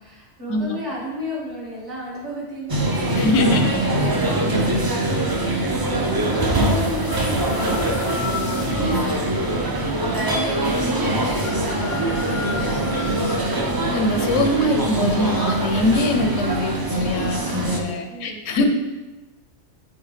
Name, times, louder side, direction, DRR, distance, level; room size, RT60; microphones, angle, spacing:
voice 1, 0.0-12.8 17.3-18.4, equal, 65° right, -7 dB, 2.3 m, -35 dB
sound 1, 2.7-17.8, right 1 dB, 35° right, 0.3 m, -23 dB
voice 2, 3.2-3.6 4.5-4.6 13.9-18.7, left 1 dB, 85° left, 5 dB, 1.0 m, -23 dB
sound 2, 7.1-9.3 11.4-13.4, left 5 dB, 55° left, 0.5 m, -33 dB
8.9 x 3.3 x 3.2 m, 1.1 s
omnidirectional pair, 1.2 m